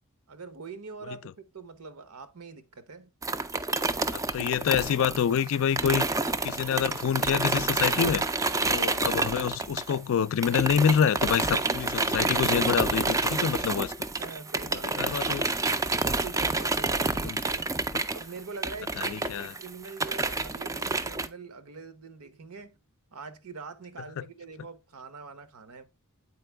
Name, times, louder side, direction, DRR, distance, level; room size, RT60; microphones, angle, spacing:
voice 1, 0.3-3.1 14.2-15.2 16.0-17.7 18.1-22.8 23.1-25.8, right 4 dB, 75° right, 0.9 m, -43 dB
sound 1, 3.2-10.1 10.4-21.3, right 3 dB, 15° right, 0.4 m, -28 dB
voice 2, 4.1-6.1 6.4-8.2 8.6-13.9 14.8-15.4 17.1-17.4 19.0-19.5, left 8 dB, 60° left, 0.3 m, -27 dB
8.5 x 4.5 x 3.3 m
head